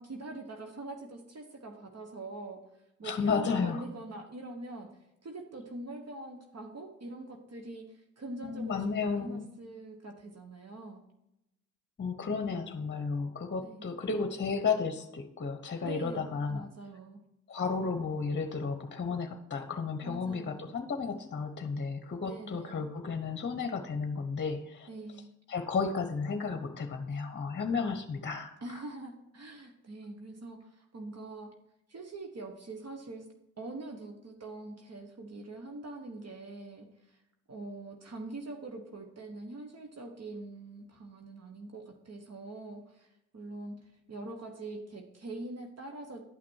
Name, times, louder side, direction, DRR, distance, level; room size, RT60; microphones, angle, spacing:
voice 1, 0.0-2.6 3.0-4.9 5.2-11.0 13.6-13.9 15.8-17.2 20.0-20.7 22.2-22.9 24.9-25.3 27.8-28.1 28.6-31.5 31.9-33.3 33.6-37.2 37.5-46.2, right 2 dB, 50° right, 3 dB, 1.3 m, -44 dB
voice 2, 3.0-3.8 8.4-9.5 12.0-16.7 17.5-24.9 25.5-28.6, left 5 dB, 35° left, 7 dB, 0.9 m, -33 dB
11.0 x 5.9 x 4.6 m, 0.87 s
supercardioid pair, 45°, 32 cm